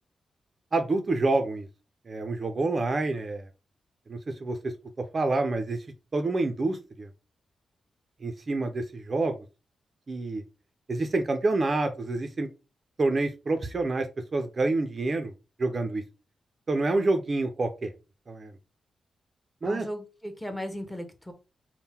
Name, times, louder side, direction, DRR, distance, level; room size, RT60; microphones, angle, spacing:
voice 1, 0.7-1.7 2.1-3.5 4.1-4.7 5.1-5.8 6.1-7.1 8.2-9.3 10.1-10.4 10.9-12.5 13.0-14.1 14.3-15.3 15.6-16.0 16.7-17.9 18.3-18.5 19.6-19.9, right 2 dB, 35° right, 7 dB, 0.4 m, -27 dB
voice 2, 19.6-21.3, equal, 5° left, 6 dB, 0.7 m, -36 dB
3.6 x 2.1 x 4.2 m, 0.30 s
wide cardioid pair, 140°, 0 cm